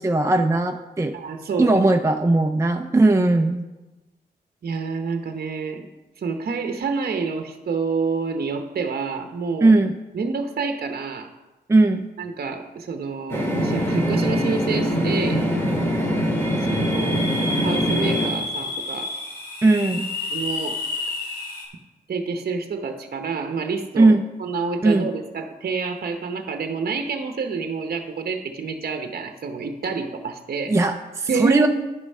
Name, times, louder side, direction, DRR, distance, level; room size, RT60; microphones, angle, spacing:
voice 1, 0.0-1.1 1.6-3.6 9.6-9.9 11.7-12.1 19.6-20.1 24.0-24.3 24.8-25.1 30.7-31.7, right 2 dB, 15° right, 5 dB, 0.6 m, -18 dB
voice 2, 1.1-1.8 4.6-5.9 6.2-9.7 10.1-11.3 12.2-15.4 16.6-19.1 20.3-20.8 22.1-30.9 31.3-31.7, right 5 dB, 60° right, 6 dB, 0.9 m, -28 dB
sound 1, 13.3-18.3, equal, 15° left, 2.4 m, -23 dB
sound 2, 16.3-21.6, left 2 dB, 65° left, 3.4 m, -30 dB
10.5 x 6.7 x 5.5 m, 1.1 s
cardioid pair, 65°, 17 cm